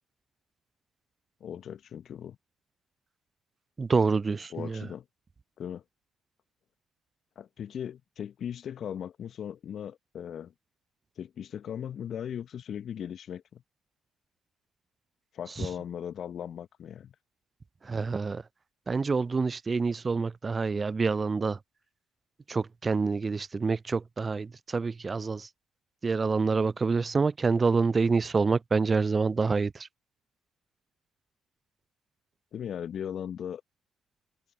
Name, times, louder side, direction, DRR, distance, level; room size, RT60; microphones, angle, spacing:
voice 1, 1.4-2.4 4.5-5.1 5.6-5.8 7.4-10.5 11.2-13.6 15.3-17.2 32.5-33.6, left 9 dB, 55° left, 1.7 m, -38 dB
voice 2, 3.8-4.9 15.6-15.7 17.8-18.4 18.9-21.6 22.5-25.5 26.0-29.9, right 4 dB, 35° right, 0.4 m, -27 dB
hypercardioid pair, 45°, 0 cm